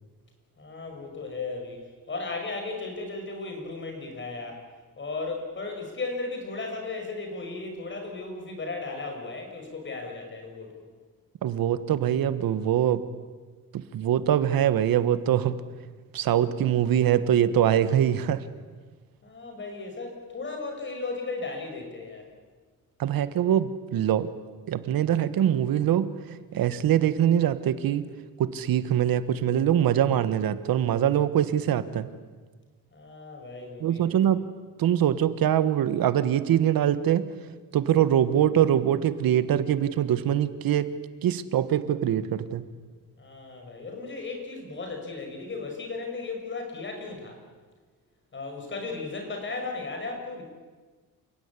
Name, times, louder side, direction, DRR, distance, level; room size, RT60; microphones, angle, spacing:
voice 1, 0.6-1.8 2.1-4.6 5.0-10.9 19.2-22.3 32.9-34.3 43.2-47.4 48.3-50.4, left 3 dB, 35° left, 3 dB, 6.1 m, -35 dB
voice 2, 11.4-13.1 13.7-15.6 16.1-18.5 23.0-24.3 24.7-26.1 26.5-28.0 28.4-32.1 33.8-34.4 34.8-37.3 37.7-40.9 41.2-42.7, right 10 dB, 85° right, 13 dB, 1.5 m, -23 dB
28.5 x 16.5 x 9.9 m, 1.4 s
wide cardioid pair, 145°, 34 cm